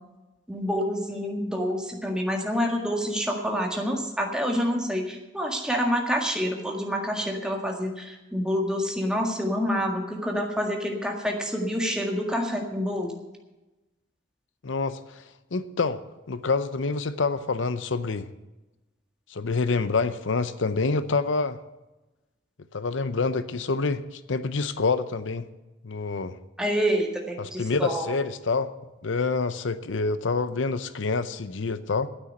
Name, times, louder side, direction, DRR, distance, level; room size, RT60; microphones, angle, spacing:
voice 1, 0.5-13.2 26.6-28.2, equal, 5° right, 1 dB, 1.8 m, -27 dB
voice 2, 14.6-15.2 15.5-16.0 16.3-18.3 19.3-21.6 22.7-25.5 25.8-26.4 27.4-28.7 29.0-32.1, left 4 dB, 75° left, 13 dB, 0.7 m, -27 dB
9.9 x 9.0 x 9.5 m, 1.1 s
head